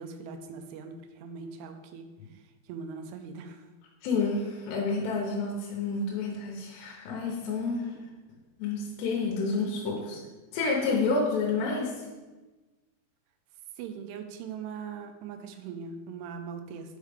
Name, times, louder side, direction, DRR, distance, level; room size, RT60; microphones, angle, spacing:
voice 1, 0.0-3.7 9.8-10.2 13.8-17.0, right 6 dB, 85° right, 6 dB, 2.5 m, -41 dB
voice 2, 4.0-7.9 8.6-10.2 10.5-11.9, left 4 dB, 80° left, -1 dB, 3.0 m, -29 dB
6.4 x 4.9 x 3.5 m, 1.2 s
omnidirectional pair, 5.0 m